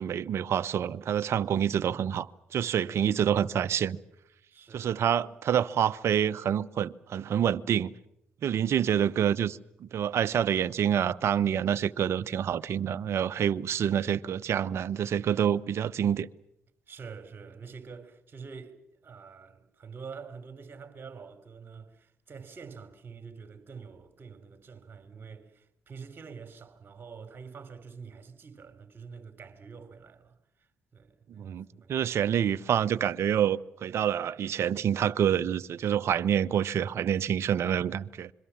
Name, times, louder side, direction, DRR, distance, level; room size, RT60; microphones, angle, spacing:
voice 1, 0.0-4.0 4.7-7.9 8.4-16.3 31.4-38.3, right 9 dB, 60° right, 0.9 m, -27 dB
voice 2, 2.6-3.1 4.5-5.1 16.9-18.7 19.0-31.9, right 5 dB, 40° right, 4.0 m, -46 dB
26.5 x 23.0 x 7.4 m
hypercardioid pair, 55°, 5 cm